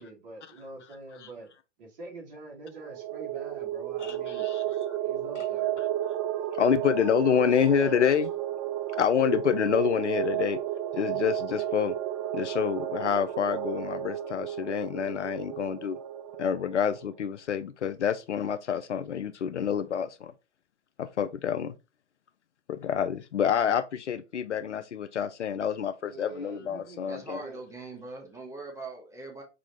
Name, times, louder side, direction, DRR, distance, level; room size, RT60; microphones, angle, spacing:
voice 1, 0.0-1.5 1.8-4.5 5.0-5.7 26.0-27.0 27.3-27.6, right 2 dB, 50° right, 2.0 m, -45 dB
sound 1, 2.7-17.1, right 12 dB, 30° right, 0.4 m, -32 dB
voice 2, 6.6-8.3 9.0-10.6 10.9-11.9 12.3-16.0 16.4-20.3 21.0-21.7 22.7-27.4, left 8 dB, 80° left, 0.5 m, -27 dB
voice 3, 27.1-29.4, right 3 dB, 10° right, 0.9 m, -41 dB
4.9 x 2.4 x 4.3 m
figure-of-eight pair, 100°, 35 cm